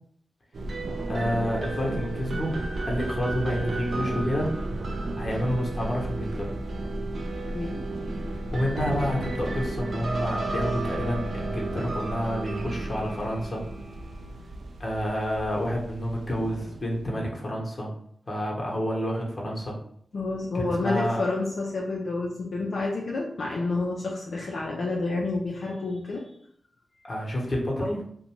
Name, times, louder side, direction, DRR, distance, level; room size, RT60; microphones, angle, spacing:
sound 1, 0.5-17.1, right 2 dB, 70° right, 0.3 m, -33 dB
voice 1, 1.1-4.5 5.2-6.5 8.5-13.6 14.8-17.9 18.3-19.8 20.5-21.2 27.0-28.0, equal, 45° left, -2 dB, 0.9 m, -29 dB
voice 2, 20.1-26.2, left 3 dB, 75° left, -2 dB, 0.4 m, -29 dB
2.5 x 2.1 x 2.9 m, 0.65 s
cardioid pair, 45°, 0 cm